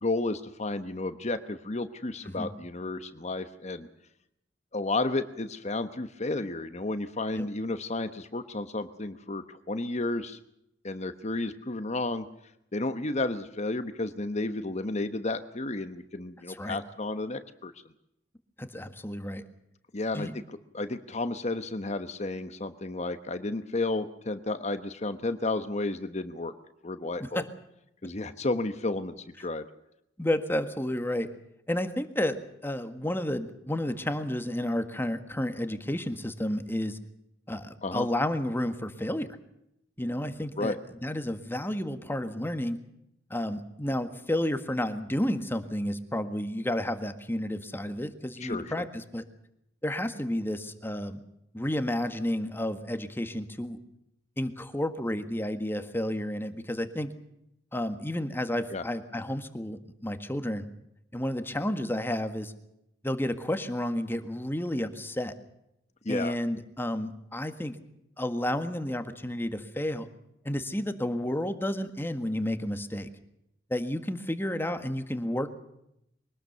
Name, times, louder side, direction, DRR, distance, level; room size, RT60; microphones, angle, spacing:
voice 1, 0.0-3.9 4.7-10.4 10.8-12.2 12.7-17.7 19.9-20.3 20.7-26.5 26.8-27.4 28.0-29.7 37.8-38.1 40.6-40.8 48.4-48.7 58.7-58.8 66.0-66.3, left 2 dB, 40° left, 10 dB, 1.1 m, -32 dB
voice 2, 18.6-19.4 20.1-20.3 27.3-27.4 30.2-31.3 31.7-37.0 37.5-39.3 40.0-40.7 41.0-42.8 43.3-49.2 49.8-51.2 51.5-53.8 54.4-57.1 57.7-60.7 61.1-62.5 63.0-65.3 66.1-67.8 68.2-70.1 70.4-73.1 73.7-75.5, left 1 dB, 10° left, 9 dB, 1.6 m, -31 dB
24.0 x 19.0 x 6.8 m, 0.80 s
head